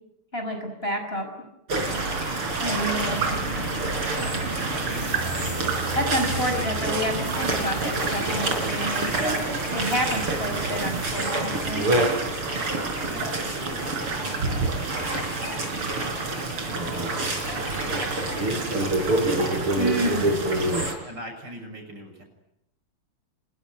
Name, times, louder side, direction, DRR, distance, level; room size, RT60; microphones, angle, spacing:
voice 1, 0.3-1.3 2.6-3.2 6.0-9.4 9.7-11.9 19.7-20.4, equal, 25° left, 4 dB, 5.8 m, -29 dB
sound 1, 1.7-20.9, right 2 dB, 85° right, 5.2 m, -27 dB
voice 2, 2.6-3.8 4.9-5.7 6.5-6.7 9.0-9.7 12.7-14.5 14.8-19.5 21.0-22.2, right 1 dB, 50° right, 4 dB, 7.4 m, -41 dB
sound 2, 3.1-11.1, right 2 dB, 30° right, 4.2 m, -36 dB
26.0 x 22.0 x 9.9 m, 0.88 s
omnidirectional pair, 2.4 m